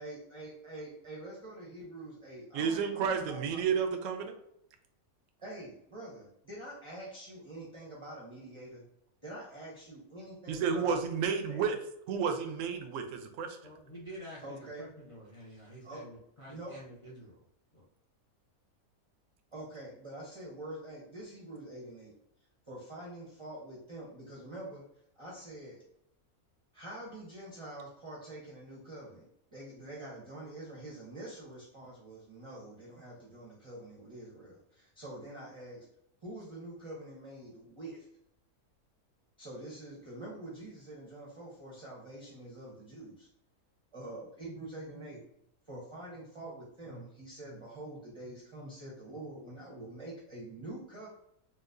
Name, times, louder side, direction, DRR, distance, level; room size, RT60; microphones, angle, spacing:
voice 1, 0.0-3.6 5.4-8.8 9.2-10.9 11.5-11.6 14.4-14.9 15.8-16.0 16.5-16.8 19.5-22.1 22.7-24.8 25.2-25.8 26.7-29.3 29.5-35.9 36.2-38.1 39.4-43.3 43.9-45.2 45.7-51.1, right 1 dB, 30° right, -5 dB, 0.6 m, -46 dB
voice 2, 2.5-4.3 10.5-11.8 12.1-13.6, right 6 dB, 70° right, 6 dB, 0.8 m, -31 dB
voice 3, 13.6-17.4 17.7-17.9, equal, 45° left, -5 dB, 0.4 m, -49 dB
4.0 x 2.3 x 2.5 m, 0.75 s
omnidirectional pair, 1.5 m